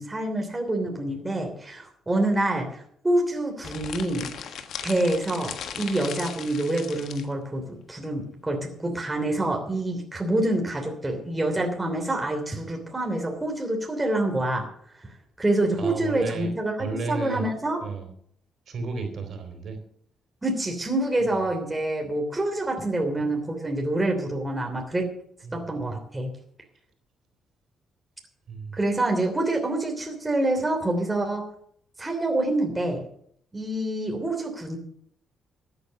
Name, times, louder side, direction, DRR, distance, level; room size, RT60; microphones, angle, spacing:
voice 1, 0.0-4.3 4.8-14.6 15.0-17.8 20.4-25.1 25.5-26.3 28.7-31.4 32.0-33.0 33.5-34.8, right 1 dB, 15° right, 2 dB, 3.0 m, -27 dB
sound 1, 3.6-7.3, left 8 dB, 70° left, 1.4 m, -37 dB
voice 2, 15.8-16.5 16.8-17.5 17.8-18.1 18.7-19.8 21.2-21.3 25.4-25.9 28.5-28.8, right 4 dB, 55° right, 6 dB, 3.8 m, -33 dB
13.5 x 8.7 x 6.7 m, 0.65 s
cardioid pair, 90°, 0 cm